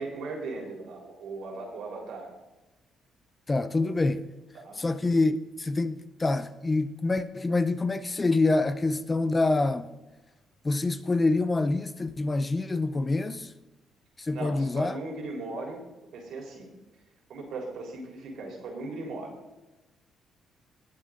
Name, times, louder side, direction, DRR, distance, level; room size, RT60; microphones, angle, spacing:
voice 1, 0.0-2.3 4.5-4.8 14.3-16.7 17.3-19.3, right 3 dB, 75° right, 4.1 m, -38 dB
voice 2, 3.5-4.3 4.8-9.9 10.6-13.5 14.2-15.0, left 2 dB, 25° left, 0.7 m, -26 dB
19.0 x 8.2 x 3.9 m
cardioid pair, 90°, 0 cm